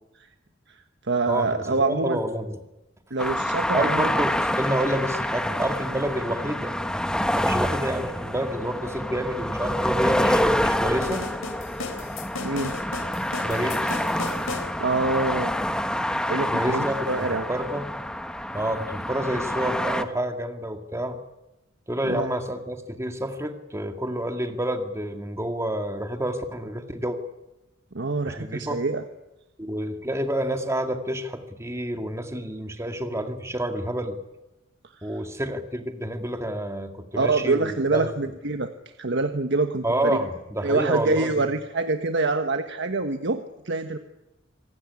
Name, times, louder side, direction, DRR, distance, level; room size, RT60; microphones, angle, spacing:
voice 1, 0.7-2.2 3.1-4.1 12.4-12.7 14.8-15.5 16.3-17.5 22.0-22.3 27.9-29.0 34.9-35.2 37.2-40.3 40.6-44.0, right 3 dB, 65° right, 7 dB, 1.3 m, -26 dB
voice 2, 1.3-2.6 3.7-4.3 4.6-6.8 7.3-11.3 13.4-14.0 16.5-17.9 18.5-21.2 21.9-27.2 28.3-28.8 29.6-34.2 35.0-38.1 39.8-41.4, right 1 dB, 15° right, 6 dB, 2.1 m, -29 dB
sound 1, 3.2-20.0, equal, 5° left, 1.3 m, -27 dB
sound 2, 11.0-14.7, left 3 dB, 80° left, 3.6 m, -35 dB
26.5 x 18.0 x 9.7 m, 0.96 s
head